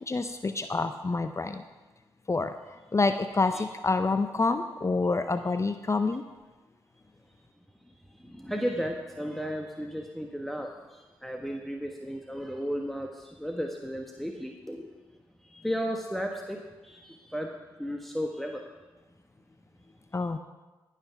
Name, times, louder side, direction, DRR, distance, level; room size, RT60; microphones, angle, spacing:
voice 1, 0.0-1.6 2.3-6.2 20.1-20.4, left 3 dB, 30° left, 9 dB, 0.6 m, -28 dB
voice 2, 7.8-14.9 15.4-17.5 17.8-18.7, equal, ahead, 2 dB, 1.2 m, -34 dB
16.5 x 5.9 x 5.8 m, 1.2 s
supercardioid pair, 45°, 10 cm